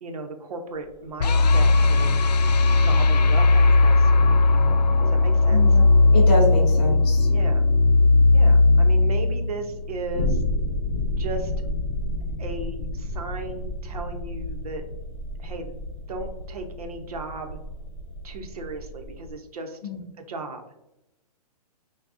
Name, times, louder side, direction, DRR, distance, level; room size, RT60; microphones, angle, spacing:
voice 1, 0.0-2.1 2.8-5.8 7.3-7.7 8.3-10.4 11.2-11.5 12.4-14.8 15.4-15.7 16.1-17.6 18.2-19.8 20.2-20.6, right 3 dB, 65° right, 5 dB, 0.8 m, -36 dB
sound 1, 0.8-19.3, left 1 dB, 45° left, 0.9 m, -33 dB
sound 2, 1.2-10.3, left 3 dB, 85° left, 0.5 m, -17 dB
voice 2, 5.5-5.8 6.1-7.3 19.8-20.0, left 2 dB, 15° left, -4 dB, 0.4 m, -26 dB
6.0 x 2.3 x 2.6 m, 0.91 s
hypercardioid pair, 175°, 20 cm